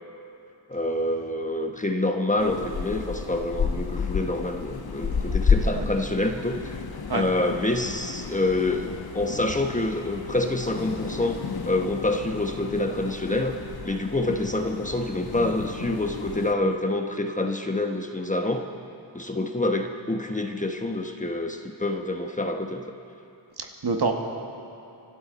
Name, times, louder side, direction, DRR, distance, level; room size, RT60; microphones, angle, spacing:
voice 1, 0.7-6.8 7.1-13.6 13.8-18.7 19.1-22.8, left 2 dB, 15° left, 3 dB, 1.1 m, -27 dB
sound 1, 2.4-16.5, left 5 dB, 50° left, 1.1 m, -31 dB
voice 2, 23.6-24.1, right 4 dB, 55° right, 2 dB, 1.9 m, -27 dB
25.0 x 12.5 x 4.1 m, 2.8 s
cardioid pair, 60°, 48 cm